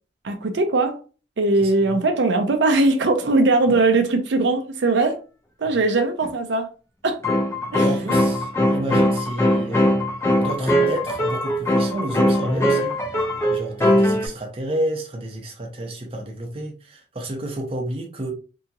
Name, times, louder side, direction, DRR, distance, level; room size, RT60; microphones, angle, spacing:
voice 1, 0.2-1.0 1.4-5.2 5.6-6.7 7.0-7.2 7.7-7.8, right 2 dB, 85° right, 0.5 m, -20 dB
voice 2, 1.6-2.1 3.7-3.8 5.7-5.8 7.8-9.9 10.4-12.9 13.5-18.3, right 1 dB, 30° right, 0.6 m, -30 dB
sound 1, 6.2-6.3 7.2-14.3, equal, 15° left, 0.5 m, -20 dB
2.8 x 2.8 x 2.4 m
head